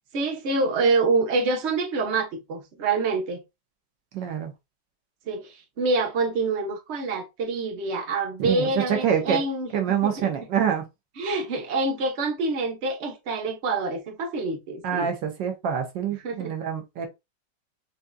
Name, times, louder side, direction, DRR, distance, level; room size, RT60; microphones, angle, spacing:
voice 1, 0.1-3.4 5.3-10.3 11.2-15.1 16.2-16.5, right 3 dB, 45° right, 1.2 m, -26 dB
voice 2, 4.1-4.5 8.4-9.4 9.7-10.9 14.8-17.1, right 8 dB, 90° right, 1.6 m, -26 dB
6.3 x 2.8 x 2.3 m
omnidirectional pair, 1.9 m